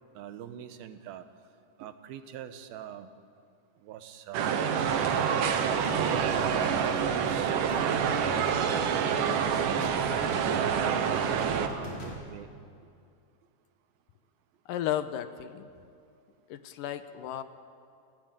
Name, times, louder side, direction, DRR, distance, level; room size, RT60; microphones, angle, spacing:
voice 1, 0.2-1.3 1.8-3.1 3.8-5.3 5.8-8.8 9.3-12.5, right 9 dB, 85° right, 9 dB, 3.0 m, -42 dB
sound 1, 4.3-11.7, right 7 dB, 70° right, 2.7 m, -27 dB
sound 2, 4.8-12.1, equal, 45° left, 4.8 m, -42 dB
voice 2, 14.7-15.7 16.5-17.4, left 11 dB, 75° left, 10 dB, 2.4 m, -34 dB
29.5 x 15.0 x 9.0 m, 2.4 s
omnidirectional pair, 4.1 m